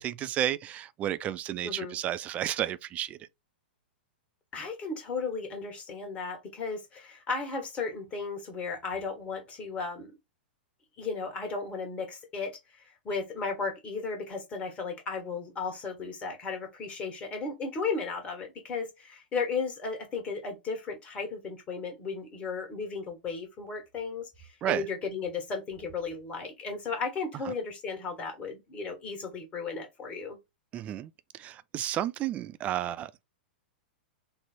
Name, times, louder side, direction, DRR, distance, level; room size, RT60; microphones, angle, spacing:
voice 1, 0.0-3.2 24.6-24.8 30.7-31.1 31.4-33.2, right 12 dB, 25° right, 0.3 m, -32 dB
voice 2, 1.6-2.0 4.5-10.1 11.0-30.4, left 4 dB, 25° left, 1.3 m, -35 dB
3.6 x 2.0 x 4.1 m
figure-of-eight pair, 105°, 5 cm